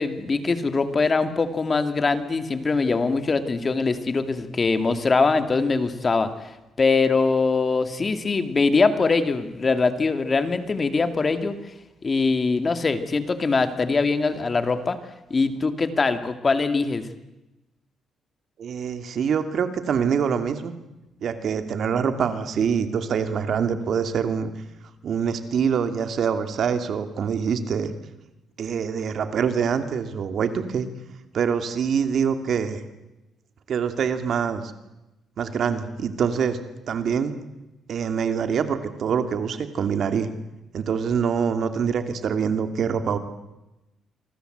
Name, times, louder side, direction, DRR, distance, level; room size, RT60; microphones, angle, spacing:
voice 1, 0.0-6.3 6.8-11.5 12.0-15.0 15.3-17.1, left 4 dB, 35° left, 9 dB, 2.5 m, -22 dB
voice 2, 18.6-20.7 21.2-24.5 25.0-27.9 28.6-30.9 31.3-32.8 33.7-34.7 35.4-36.6 36.9-37.3 37.9-40.3 40.7-43.2, right 7 dB, 60° right, 8 dB, 2.6 m, -25 dB
27.5 x 24.5 x 8.1 m, 0.99 s
cardioid pair, 90°, 0 cm